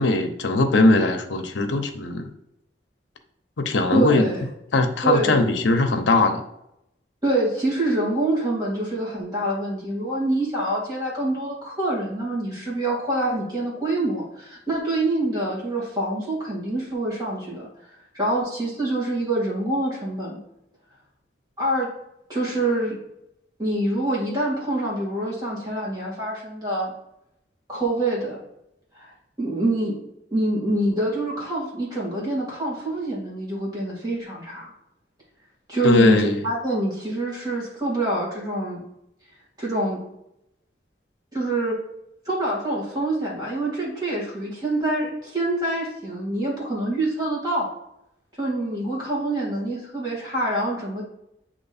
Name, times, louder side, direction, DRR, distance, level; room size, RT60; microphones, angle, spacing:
voice 1, 0.0-2.3 3.6-4.3 4.7-6.4 35.8-36.4, left 2 dB, 90° left, 6 dB, 0.8 m, -20 dB
voice 2, 3.9-4.4 5.0-5.4 7.2-17.7 18.1-20.4 21.6-21.9 22.3-23.0 23.6-26.9 27.7-28.4 29.0-29.1 29.4-30.0 30.3-34.7 35.7-38.8 39.6-40.0 41.3-41.8 42.3-47.7 48.4-51.0, right 1 dB, 20° right, -5 dB, 2.3 m, -26 dB
7.7 x 3.1 x 4.2 m, 0.81 s
head